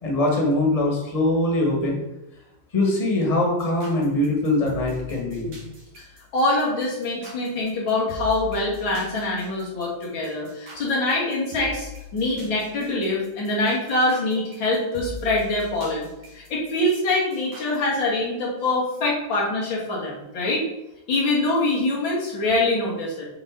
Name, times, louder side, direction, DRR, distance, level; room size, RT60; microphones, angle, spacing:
voice 1, 0.0-2.0 2.7-5.6, left 1 dB, 20° left, -1 dB, 1.4 m, -22 dB
sound 1, 3.6-17.8, left 2 dB, 80° right, 2.5 m, -41 dB
voice 2, 6.3-16.1 16.3-20.7 21.1-23.3, left 2 dB, 90° left, -4 dB, 2.5 m, -24 dB
7.6 x 4.0 x 3.8 m, 0.91 s
omnidirectional pair, 2.1 m